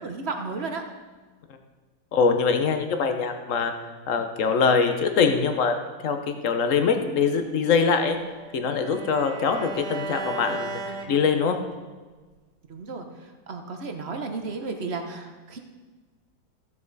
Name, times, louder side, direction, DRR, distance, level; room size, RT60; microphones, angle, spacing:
voice 1, 0.0-0.8 12.7-15.6, right 4 dB, 45° right, 5 dB, 1.0 m, -33 dB
voice 2, 2.1-3.7 4.1-5.8 6.0-8.2 8.5-11.6, left 5 dB, 50° left, 6 dB, 1.1 m, -23 dB
Bowed string instrument, 7.6-11.8, right 3 dB, 60° right, 1.4 m, -36 dB
15.0 x 7.4 x 4.1 m, 1.3 s
omnidirectional pair, 2.1 m